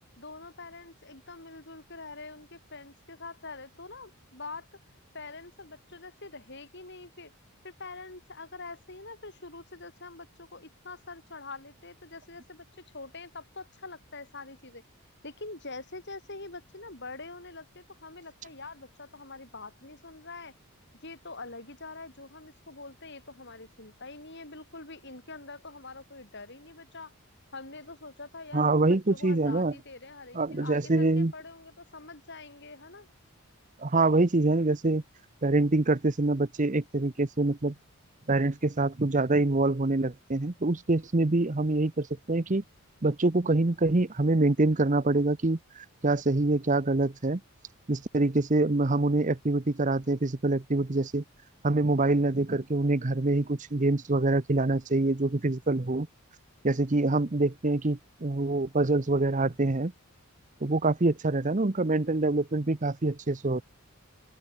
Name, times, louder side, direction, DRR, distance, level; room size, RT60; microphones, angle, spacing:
voice 1, 0.2-4.7 5.1-7.3 7.6-12.6 12.9-14.8 15.2-20.5 21.0-27.1 27.5-33.1, left 3 dB, 50° left, 7.5 m, -44 dB
voice 2, 28.5-29.7 30.3-31.3 33.8-35.0 35.4-37.7 38.3-42.6 43.0-47.4 47.9-51.2 51.6-56.1 56.6-59.9 60.6-63.6, right 2 dB, 35° right, 0.8 m, -25 dB
open air
head